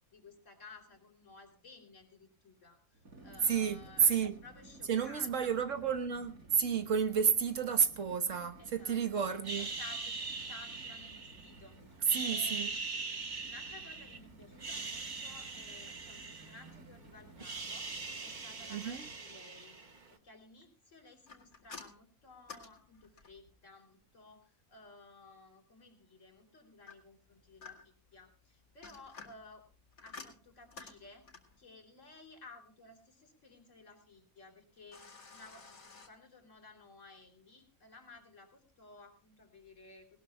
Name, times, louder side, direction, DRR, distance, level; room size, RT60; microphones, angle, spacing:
voice 1, 0.1-5.6 8.6-9.0 9.3-17.9 18.2-19.8 20.1-29.7 30.0-31.3 31.6-35.7 36.1-40.2, left 3 dB, 60° left, 3.5 m, -56 dB
sound 1, 2.9-19.4, right 2 dB, 85° right, 3.9 m, -57 dB
voice 2, 3.5-4.3 4.9-9.7 12.1-12.7 18.7-19.0, right 7 dB, 65° right, 1.5 m, -31 dB
sound 2, 9.4-11.6 12.0-14.2 14.5-16.9 17.2-20.1, right 4 dB, 35° right, 1.1 m, -41 dB
sound 3, 21.3-23.5 26.9-28.1 28.6-31.6 34.9-36.1, left 4 dB, 90° left, 2.8 m, -52 dB
19.5 x 19.0 x 2.3 m
omnidirectional pair, 1.4 m